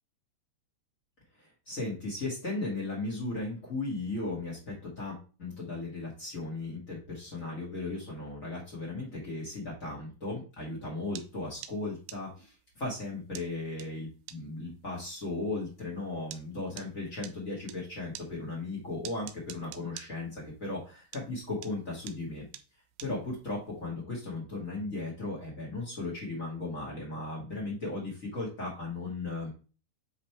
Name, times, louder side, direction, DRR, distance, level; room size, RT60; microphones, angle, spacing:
voice 1, 1.3-22.5 23.0-29.5, left 2 dB, 85° left, -3 dB, 0.7 m, -36 dB
sound 1, 11.2-17.8 18.2-20.9 21.1-23.8, right 12 dB, 85° right, 2.9 m, -47 dB
8.3 x 3.4 x 4.5 m, 0.35 s
omnidirectional pair, 5.0 m